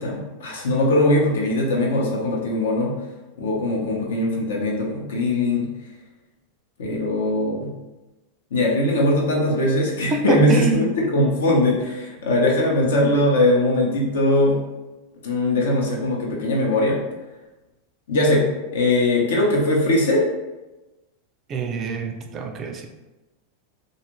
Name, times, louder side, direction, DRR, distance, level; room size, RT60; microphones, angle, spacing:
voice 1, 0.0-2.9 3.4-5.7 6.8-7.7 8.5-14.6 15.2-17.0 18.1-18.5 18.7-20.2, left 1 dB, 90° left, -1 dB, 0.8 m, -20 dB
voice 2, 10.1-10.8 21.5-22.9, right 3 dB, 30° right, 5 dB, 0.3 m, -25 dB
2.6 x 2.4 x 3.0 m, 1.1 s
supercardioid pair, 140°, 0 cm